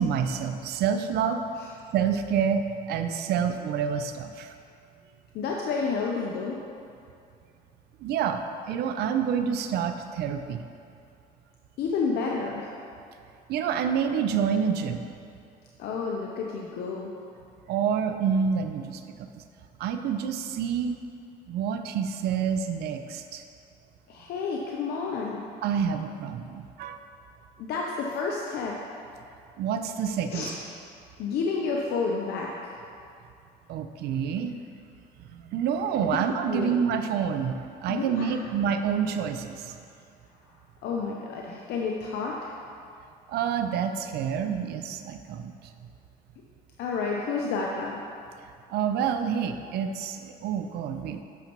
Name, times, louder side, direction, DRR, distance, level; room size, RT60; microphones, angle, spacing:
voice 1, 0.0-1.4 1.9-4.5 8.0-10.6 13.5-15.0 17.7-19.4 19.8-21.0 21.5-23.4 25.6-27.0 29.6-30.5 33.7-34.6 35.3-39.8 43.3-45.5 48.7-51.2, right 7 dB, 70° right, 8 dB, 0.5 m, -28 dB
voice 2, 5.3-6.6 11.8-12.7 15.8-17.1 24.1-25.4 27.6-28.8 30.3-30.5 31.2-32.8 36.5-36.8 37.9-38.4 40.8-42.5 46.8-48.0, left 4 dB, 75° left, -2 dB, 0.7 m, -30 dB
8.2 x 6.5 x 3.0 m, 2.4 s
cardioid pair, 110°, 17 cm